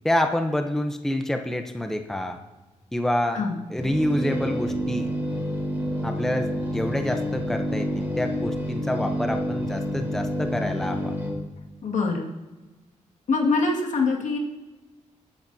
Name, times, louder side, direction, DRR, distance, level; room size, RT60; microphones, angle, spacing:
voice 1, 0.0-2.4 2.9-3.4 3.7-5.1 6.0-11.1, left 1 dB, 5° left, 5 dB, 0.7 m, -27 dB
sound 1, 3.8-11.3, equal, 15° right, 3.1 m, -28 dB
voice 2, 11.8-12.3 13.3-14.4, left 3 dB, 75° left, 0 dB, 2.0 m, -24 dB
20.0 x 9.3 x 2.7 m, 1.2 s
wide cardioid pair, 140°, 13 cm